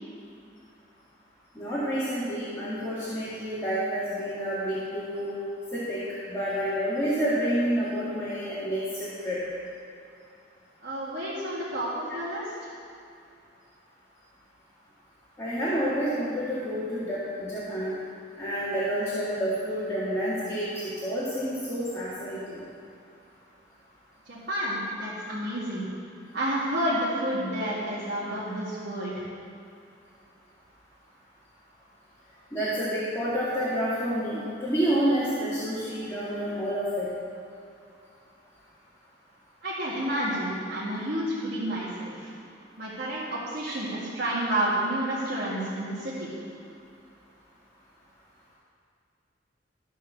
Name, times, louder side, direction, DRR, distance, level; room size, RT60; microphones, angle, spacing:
voice 1, 1.5-5.3 5.7-6.0 6.3-9.4 15.4-17.9 18.4-22.6 32.5-37.1, equal, 15° left, -11 dB, 2.2 m, -29 dB
voice 2, 10.8-12.5 24.3-25.9 26.3-29.1 39.6-42.3 42.8-46.3, right 1 dB, 55° right, -9 dB, 2.0 m, -30 dB
13.5 x 4.6 x 7.0 m, 2.6 s
head